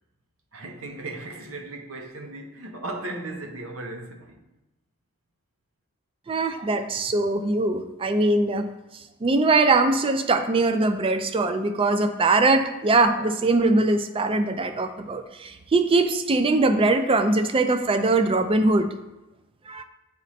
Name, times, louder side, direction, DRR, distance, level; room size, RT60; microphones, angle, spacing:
voice 1, 0.5-4.5, right 2 dB, 70° right, 0.9 m, -36 dB
voice 2, 6.3-8.7 9.2-18.9 19.7-19.8, right 2 dB, 25° right, 0.4 m, -22 dB
9.0 x 3.1 x 4.2 m
head